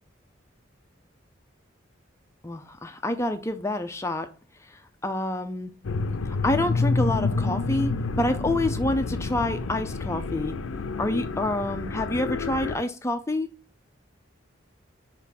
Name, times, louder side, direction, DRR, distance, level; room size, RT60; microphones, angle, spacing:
voice 1, 2.4-4.3 4.6-5.7 6.2-10.6 11.0-13.5, left 1 dB, 15° left, 0.4 m, -28 dB
sound 1, 5.8-12.8, left 3 dB, 85° left, 0.5 m, -28 dB
5.1 x 3.6 x 5.7 m
head